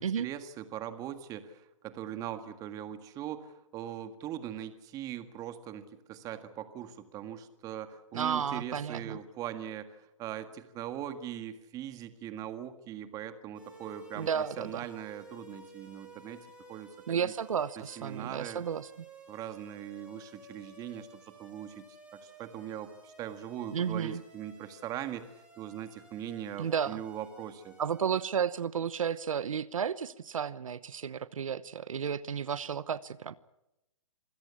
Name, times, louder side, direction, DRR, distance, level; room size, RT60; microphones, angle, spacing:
voice 1, 0.0-17.3 17.8-18.6 19.3-21.8 22.1-27.7, right 10 dB, 20° right, 10 dB, 1.8 m, -41 dB
voice 2, 8.1-9.2 14.2-14.9 17.1-18.9 23.7-24.2 26.6-27.0 27.8-33.4, right 7 dB, 80° right, 17 dB, 1.0 m, -32 dB
sound 1, 13.5-28.3, right 1 dB, 5° right, 7.6 m, -54 dB
26.5 x 17.0 x 8.6 m, 0.90 s
hypercardioid pair, 150°, 17 cm